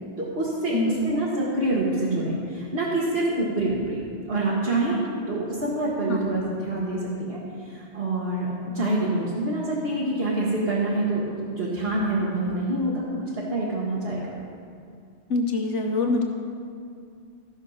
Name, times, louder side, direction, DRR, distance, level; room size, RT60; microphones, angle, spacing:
voice 1, 0.2-0.8 1.0-11.3 11.6-14.4, right 2 dB, 55° right, -7 dB, 1.8 m, -26 dB
voice 2, 0.7-1.2 6.1-6.4 15.3-16.2, left 2 dB, 85° left, 2 dB, 1.4 m, -25 dB
15.0 x 6.4 x 5.6 m, 2.3 s
omnidirectional pair, 1.2 m